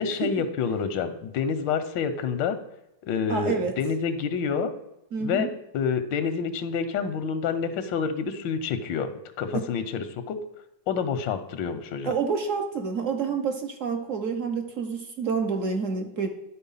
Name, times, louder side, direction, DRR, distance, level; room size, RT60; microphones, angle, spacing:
voice 1, 0.0-2.6 3.0-4.7 5.2-9.1 9.4-10.4 10.9-12.1, left 6 dB, 90° left, 10 dB, 1.4 m, -28 dB
voice 2, 3.3-3.7 5.1-5.5 9.5-9.7 12.0-16.3, right 5 dB, 55° right, 4 dB, 0.9 m, -28 dB
11.0 x 4.3 x 5.5 m, 0.87 s
omnidirectional pair, 2.0 m